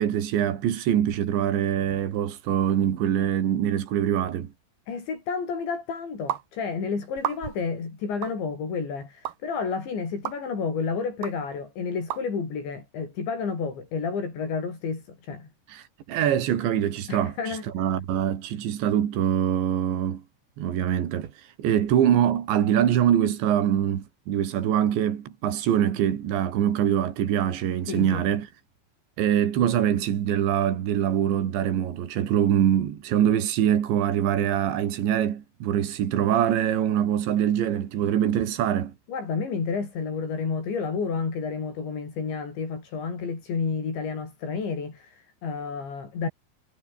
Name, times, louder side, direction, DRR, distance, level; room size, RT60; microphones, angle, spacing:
voice 1, 0.0-4.5 15.7-20.2 20.6-28.5 29.2-38.9, right 10 dB, 85° right, 4.9 m, -24 dB
voice 2, 4.9-15.5 17.1-17.6 27.9-28.3 39.1-46.3, left 5 dB, 85° left, 9.1 m, -30 dB
sound 1, 6.3-6.4 7.2-7.7 8.2-8.4 9.2-9.4 10.2-10.4 11.2-11.3 12.1-12.2, right 12 dB, 60° right, 2.6 m, -31 dB
omnidirectional pair, 5.1 m